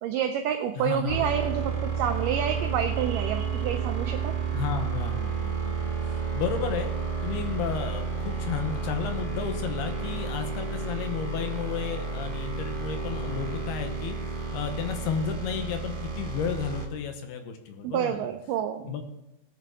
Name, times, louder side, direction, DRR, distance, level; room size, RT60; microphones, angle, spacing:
voice 1, 0.0-4.6 17.8-18.9, right 9 dB, 85° right, 6 dB, 1.9 m, -29 dB
voice 2, 0.8-1.2 4.5-6.9 7.2-14.2 14.5-18.3 18.8-19.0, left 7 dB, 85° left, 6 dB, 3.2 m, -33 dB
sound 1, 1.1-16.9, right 5 dB, 35° right, 0.8 m, -31 dB
18.5 x 6.9 x 4.7 m, 0.90 s
omnidirectional pair, 4.5 m